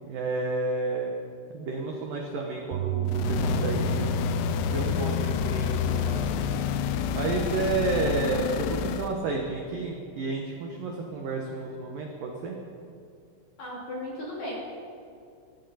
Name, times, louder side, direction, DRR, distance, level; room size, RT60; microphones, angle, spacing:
voice 1, 0.1-1.1 1.5-4.1 4.7-6.3 7.1-12.6, right 3 dB, 75° right, 0 dB, 2.1 m, -31 dB
Bass guitar, 2.7-9.0, right 11 dB, 90° right, 2.3 m, -35 dB
sound 1, 3.1-9.2, left 9 dB, 85° left, 2.7 m, -28 dB
voice 2, 13.6-14.6, left 1 dB, 40° left, -4 dB, 3.5 m, -35 dB
21.5 x 14.5 x 4.2 m, 2.4 s
omnidirectional pair, 5.7 m